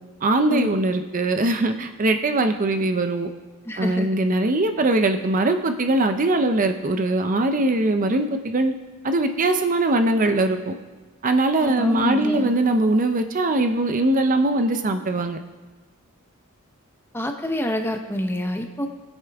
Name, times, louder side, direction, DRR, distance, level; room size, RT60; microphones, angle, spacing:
voice 1, 0.2-3.3 3.8-8.7 9.0-10.7 11.2-15.4, right 2 dB, 35° right, 8 dB, 0.6 m, -21 dB
voice 2, 3.7-4.1 11.6-12.5 17.1-18.9, equal, 10° left, 5 dB, 0.7 m, -27 dB
18.5 x 8.2 x 3.5 m, 1.3 s
head